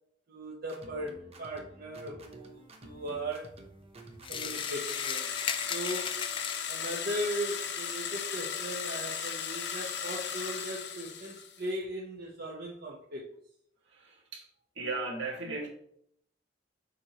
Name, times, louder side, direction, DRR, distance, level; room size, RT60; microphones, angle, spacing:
voice 1, 0.3-3.5 4.3-5.3 5.7-6.2 6.7-13.2, right 1 dB, 55° right, -3 dB, 1.0 m, -38 dB
sound 1, 0.6-4.7, right 2 dB, 35° right, 0.8 m, -51 dB
shake empty spray, 4.2-7.2, left 7 dB, 30° left, 0.3 m, -37 dB
sound 2, 4.4-11.7, left 7 dB, 65° left, 0.7 m, -36 dB
voice 2, 13.9-14.5 14.8-15.7, right 3 dB, 75° right, -3 dB, 2.0 m, -36 dB
7.3 x 4.5 x 3.0 m, 0.70 s
head